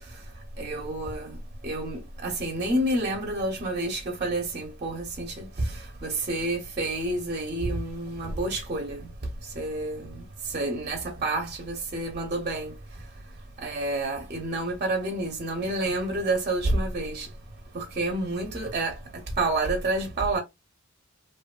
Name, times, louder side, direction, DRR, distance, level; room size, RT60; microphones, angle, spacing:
voice 1, 0.6-1.4 1.6-9.1 9.6-12.7 13.6-17.3 17.7-19.0 19.4-20.4, right 2 dB, 35° right, 0.5 m, -29 dB
2.6 x 2.2 x 2.3 m
head